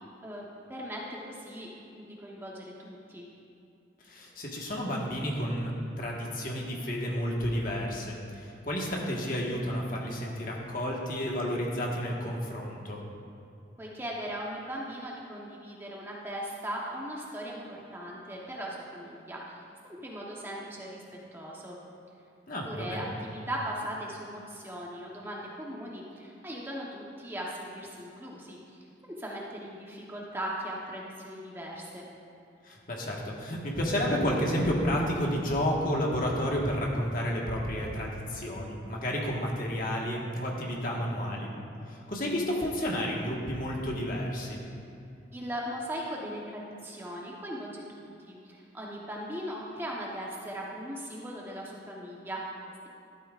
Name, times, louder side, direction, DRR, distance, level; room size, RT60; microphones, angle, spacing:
voice 1, 0.2-3.3 13.8-21.8 22.6-32.1 45.3-52.9, equal, 10° right, -3 dB, 0.9 m, -39 dB
voice 2, 4.0-5.7 6.0-13.0 22.5-23.1 32.6-41.6 41.9-44.6, equal, 50° left, -2 dB, 1.5 m, -31 dB
12.5 x 11.5 x 2.5 m, 2.6 s
head